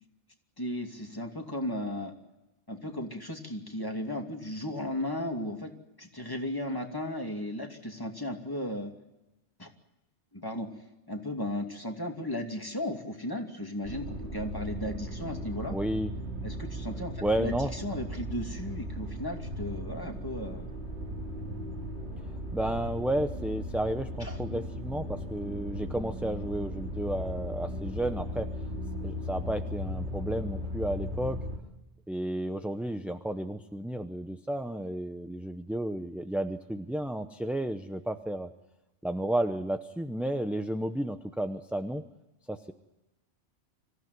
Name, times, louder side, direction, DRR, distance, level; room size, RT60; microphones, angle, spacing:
voice 1, 0.6-2.1 2.7-5.7 6.0-8.9 9.6-9.7 10.3-10.7 11.1-15.8 16.4-20.7 24.2-24.4, left 1 dB, 20° left, 3 dB, 2.5 m, -35 dB
sound 1, 13.8-31.6, equal, 75° right, 2.6 m, -37 dB
voice 2, 15.7-16.1 17.2-17.7 22.2-28.5 29.0-31.4 32.1-38.5 39.0-42.0 42.5-42.7, right 1 dB, ahead, 7 dB, 0.6 m, -32 dB
25.0 x 15.0 x 9.4 m, 1.0 s
omnidirectional pair, 1.1 m